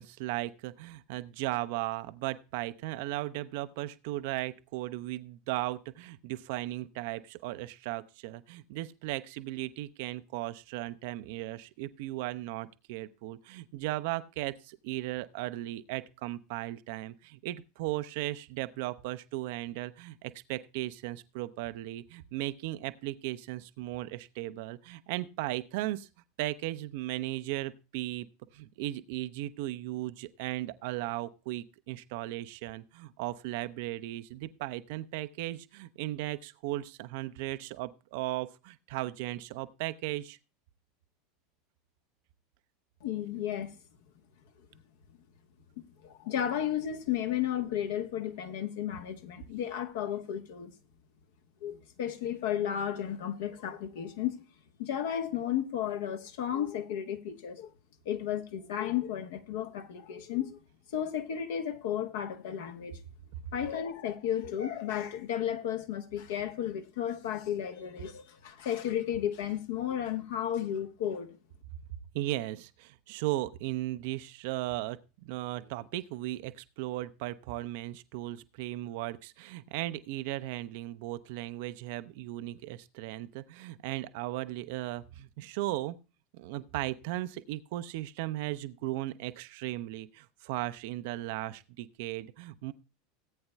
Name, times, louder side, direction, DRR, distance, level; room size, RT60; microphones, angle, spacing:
voice 1, 0.0-26.1 26.4-28.3 28.5-40.4 72.1-86.0 86.3-92.7, right 16 dB, 55° right, 0.5 m, -36 dB
voice 2, 43.0-43.7 46.0-50.7 51.6-54.4 54.8-57.7 58.0-60.6 60.9-63.0 63.5-71.3, left 10 dB, 60° left, 1.1 m, -33 dB
17.5 x 8.7 x 2.2 m
figure-of-eight pair, 80°, 0 cm